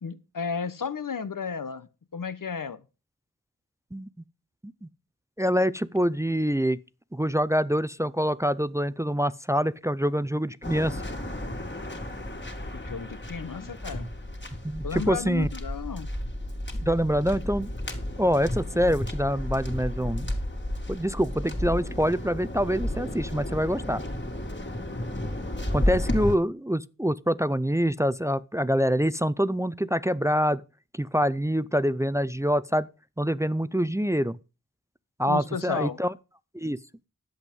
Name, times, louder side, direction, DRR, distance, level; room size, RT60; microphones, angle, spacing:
voice 1, 0.0-2.8 12.7-14.1 14.8-16.1 35.2-36.0, left 6 dB, 80° left, 1.0 m, -33 dB
voice 2, 5.4-6.8 7.1-11.0 14.6-15.5 16.8-17.7 18.2-20.3 20.9-24.0 25.7-30.6 30.9-32.9 33.2-34.4 35.2-36.1 36.5-36.8, equal, 10° right, 0.5 m, -25 dB
Waves surf, 10.6-26.4, left 1 dB, 35° left, 2.6 m, -32 dB
11.0 x 8.0 x 5.3 m
wide cardioid pair, 65°, 32 cm